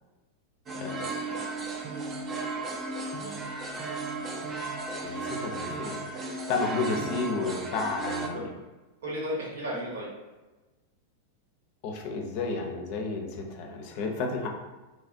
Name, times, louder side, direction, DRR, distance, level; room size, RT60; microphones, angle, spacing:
sound 1, 0.7-8.3, right 3 dB, 30° right, 0.4 m, -35 dB
voice 1, 5.0-8.5 11.8-14.5, left 3 dB, 55° left, 2 dB, 0.5 m, -32 dB
voice 2, 9.0-10.1, equal, 75° right, -3 dB, 1.0 m, -34 dB
3.1 x 2.4 x 2.5 m, 1.2 s
hypercardioid pair, 95°, 0 cm